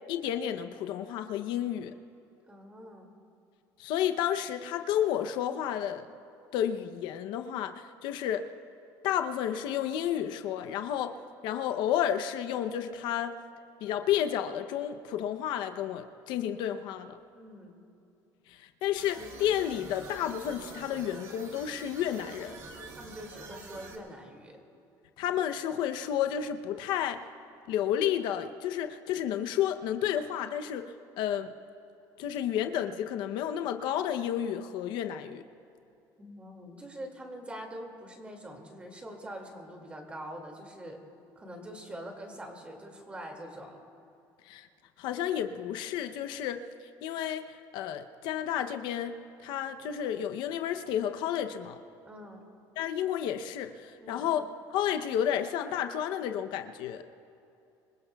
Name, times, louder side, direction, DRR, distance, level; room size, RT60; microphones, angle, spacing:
voice 1, 0.1-1.9 3.8-6.1 6.5-8.5 9.0-11.2 11.4-13.4 13.8-17.2 18.5-22.6 25.2-27.2 27.7-31.5 32.2-35.4 44.5-44.7 45.0-46.6 47.0-51.8 52.8-57.0, left 10 dB, 70° left, 7 dB, 0.7 m, -31 dB
voice 2, 2.5-3.1 17.3-17.8 23.0-24.6 36.2-41.0 41.4-43.8 52.0-52.4 54.0-54.3, equal, 15° right, 2 dB, 2.3 m, -44 dB
sound 1, 19.0-24.0, right 3 dB, 40° right, 2.0 m, -46 dB
26.5 x 22.5 x 2.3 m, 2.7 s
cardioid pair, 150°, 8 cm